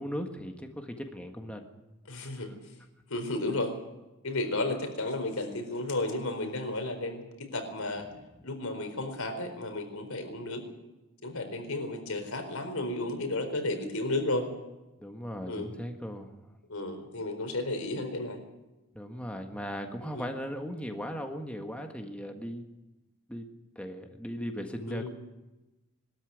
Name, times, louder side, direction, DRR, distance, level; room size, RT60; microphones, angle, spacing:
voice 1, 0.0-1.7 2.2-2.3 15.0-16.3 18.9-22.6 23.3-23.5 23.7-25.1, equal, 5° left, 4 dB, 1.6 m, -38 dB
voice 2, 2.1-2.5 3.1-3.7 4.2-7.2 7.5-8.1 8.4-10.6 11.2-14.5 15.4-15.7 16.7-18.4 20.1-20.3 24.9-25.1, left 2 dB, 85° left, 6 dB, 4.3 m, -33 dB
21.5 x 13.0 x 9.3 m, 1.0 s
head